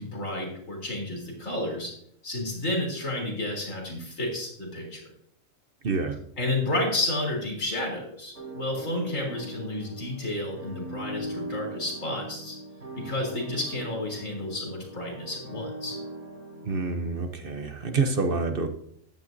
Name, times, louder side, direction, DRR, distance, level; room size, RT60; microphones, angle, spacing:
voice 1, 0.0-1.9 2.2-5.0 6.4-12.6 13.0-16.0, left 1 dB, 70° left, 0 dB, 3.8 m, -31 dB
voice 2, 5.8-6.2 16.6-18.7, right 4 dB, 50° right, 7 dB, 0.9 m, -27 dB
sound 1, 8.3-17.3, right 1 dB, 65° right, 3.5 m, -40 dB
14.0 x 11.5 x 2.7 m, 0.69 s
omnidirectional pair, 1.4 m